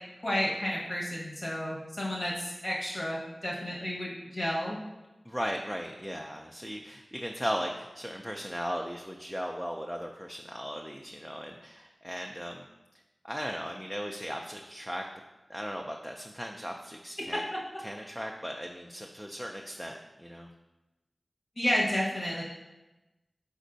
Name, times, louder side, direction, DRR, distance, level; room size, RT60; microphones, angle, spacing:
voice 1, 0.2-4.8 21.6-22.4, left 1 dB, 55° left, -5 dB, 1.2 m, -31 dB
voice 2, 5.2-12.7 13.2-15.0 15.5-17.4 17.8-20.5, equal, ahead, 2 dB, 0.3 m, -37 dB
4.4 x 4.0 x 2.6 m, 1.1 s
cardioid pair, 45°, 0 cm